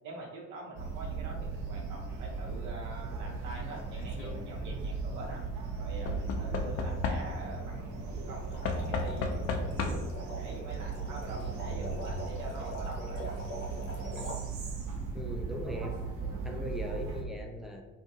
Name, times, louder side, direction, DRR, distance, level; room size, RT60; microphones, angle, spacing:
voice 1, 0.0-5.4 5.8-13.4, right 2 dB, 80° right, -3 dB, 0.9 m, -45 dB
sound 1, 0.7-17.2, right 4 dB, 55° right, 0.7 m, -37 dB
Knock / Wood, 3.8-4.3 6.0-7.6 8.6-10.2 11.3-11.4 11.6-11.7, left 4 dB, 50° left, 0.5 m, -34 dB
sound 2, 8.5-14.4, equal, 90° left, 0.7 m, -44 dB
voice 2, 15.1-16.0 16.4-17.8, equal, ahead, 1 dB, 0.3 m, -39 dB
2.6 x 2.5 x 2.6 m, 1.1 s
hypercardioid pair, 65°, 39 cm